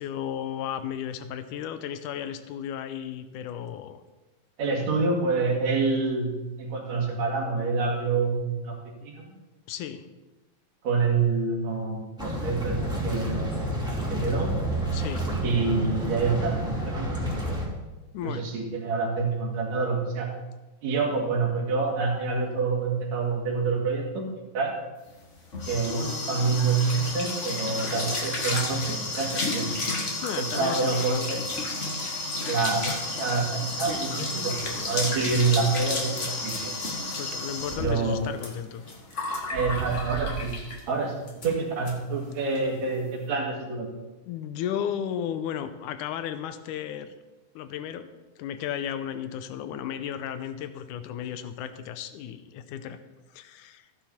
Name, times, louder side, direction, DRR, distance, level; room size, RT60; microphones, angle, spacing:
voice 1, 0.0-4.0 9.7-10.1 12.8-12.9 14.9-15.3 18.1-18.8 30.2-31.4 37.2-38.8 39.3-39.5 44.2-47.1 47.6-48.1 48.4-53.0 53.3-53.9, left 9 dB, 80° left, 10 dB, 2.0 m, -34 dB
voice 2, 4.6-6.3 6.6-9.3 10.8-13.7 14.1-14.5 15.4-17.2 18.2-20.3 20.8-24.2 24.5-24.7 25.7-29.7 30.4-31.2 32.5-32.9 33.2-34.6 34.8-36.7 37.8-38.2 39.5-40.5 40.9-41.1 41.4-43.9, right 4 dB, 55° right, -1 dB, 3.2 m, -27 dB
sound 1, 12.2-17.7, right 1 dB, ahead, 2.2 m, -29 dB
sound 2, 25.1-40.9 41.3-41.5 41.9-42.0 42.2-42.6, left 2 dB, 50° left, 0.9 m, -32 dB
sound 3, 37.3-38.0 38.4-38.5 39.1-39.2 39.5-40.7, right 7 dB, 90° right, 2.7 m, -35 dB
14.5 x 10.0 x 4.3 m, 1.1 s
omnidirectional pair, 4.0 m